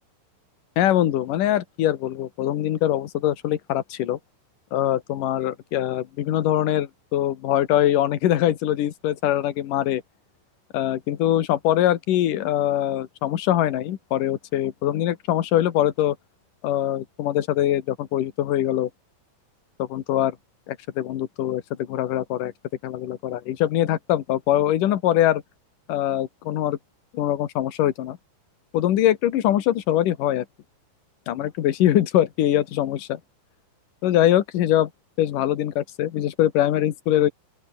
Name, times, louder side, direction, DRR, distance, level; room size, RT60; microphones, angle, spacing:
voice 1, 0.8-4.2 4.7-10.0 10.7-16.2 16.6-18.9 19.8-20.4 20.7-22.5 22.8-25.4 25.9-26.8 27.1-28.2 28.7-30.4 31.3-33.2 34.0-34.9 35.2-37.3, left 12 dB, 60° left, 2.5 m, -23 dB
open air
omnidirectional pair, 5.3 m